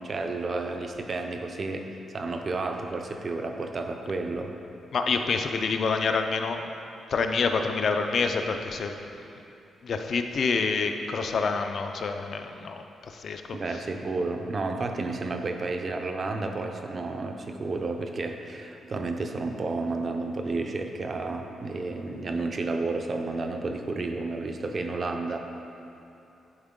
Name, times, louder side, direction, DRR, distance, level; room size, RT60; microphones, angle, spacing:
voice 1, 0.0-4.5 13.5-25.4, right 3 dB, 30° right, 5 dB, 0.5 m, -31 dB
voice 2, 4.9-6.6 7.1-9.0 9.8-13.6, left 4 dB, 45° left, 6 dB, 0.4 m, -27 dB
10.5 x 4.5 x 3.7 m, 2.9 s
wide cardioid pair, 180°, 0 cm